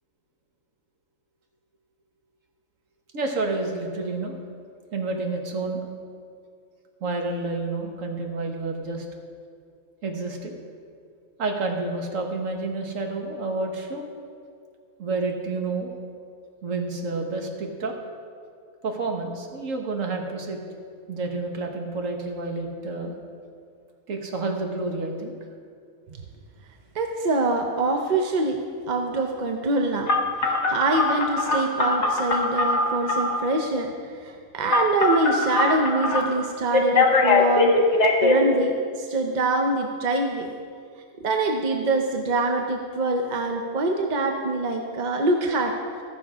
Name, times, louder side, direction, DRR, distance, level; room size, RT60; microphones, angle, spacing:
voice 1, 3.1-4.4 4.9-5.9 7.0-9.0 10.0-10.5 11.4-14.0 15.0-15.9 16.6-17.9 18.8-20.6 21.1-23.1 24.1-25.3, right 3 dB, 75° right, 2 dB, 1.6 m, -29 dB
voice 2, 26.9-28.6 28.9-37.7 38.2-40.5 41.2-45.7, right 2 dB, 45° right, 3 dB, 0.6 m, -24 dB
Telephone, 30.1-33.4 34.7-36.2 36.7-38.3, left 3 dB, 60° left, 1.3 m, -21 dB
14.5 x 6.1 x 4.9 m, 2.2 s
omnidirectional pair, 1.4 m